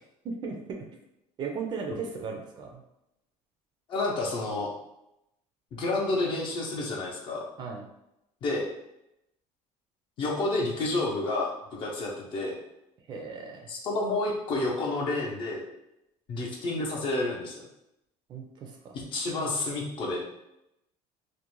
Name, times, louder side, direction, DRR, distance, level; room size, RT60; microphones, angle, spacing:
voice 1, 0.2-0.8 1.4-2.8 7.6-7.8 13.1-13.7 18.3-18.9, right 5 dB, 35° right, 2 dB, 0.4 m, -36 dB
voice 2, 3.9-4.7 5.7-7.4 8.4-8.6 10.2-11.5 11.8-12.6 13.7-15.7 16.3-17.6 18.9-20.3, left 2 dB, 40° left, -1 dB, 0.5 m, -30 dB
2.4 x 2.1 x 3.0 m, 0.86 s
cardioid pair, 160°, 13 cm